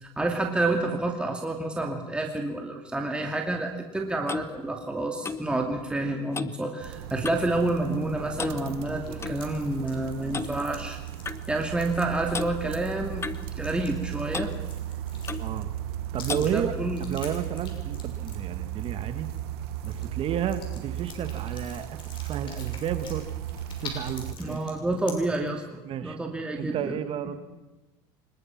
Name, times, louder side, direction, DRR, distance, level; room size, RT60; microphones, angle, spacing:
voice 1, 0.0-11.0 11.5-13.3 13.6-14.5 16.4-17.0 24.4-26.9, right 2 dB, 10° right, 2 dB, 2.6 m, -29 dB
Clock, 3.7-7.6 7.8-8.1 8.4-9.4 10.3-10.5 11.2-11.4 12.3-12.5 13.2-14.0 14.3-14.6 15.3-15.5 16.3-16.5, left 5 dB, 20° left, 1.2 m, -35 dB
sound 1, 6.8-24.3, right 11 dB, 80° right, 1.1 m, -36 dB
sound 2, 8.6-15.7 16.1-19.5 19.8-20.1 20.5-25.5, left 5 dB, 40° left, 6.6 m, -46 dB
voice 2, 15.4-15.7 16.1-16.7 17.0-19.3 19.8-21.9 22.1-23.3 23.8-24.6 25.8-26.2 26.6-27.4, right 9 dB, 45° right, 10 dB, 1.9 m, -32 dB
25.0 x 22.0 x 6.0 m, 1.1 s
supercardioid pair, 105°, 13 cm